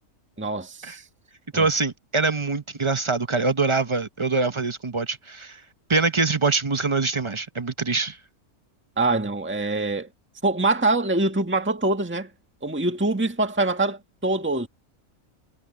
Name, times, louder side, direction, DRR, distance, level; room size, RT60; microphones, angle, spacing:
voice 1, 0.4-1.0 1.5-1.7 9.0-10.1 10.4-12.3 12.6-14.7, right 2 dB, 10° right, 1.7 m, -24 dB
voice 2, 1.5-5.6 5.9-8.2, right 4 dB, 25° right, 0.8 m, -24 dB
omnidirectional pair, 1.4 m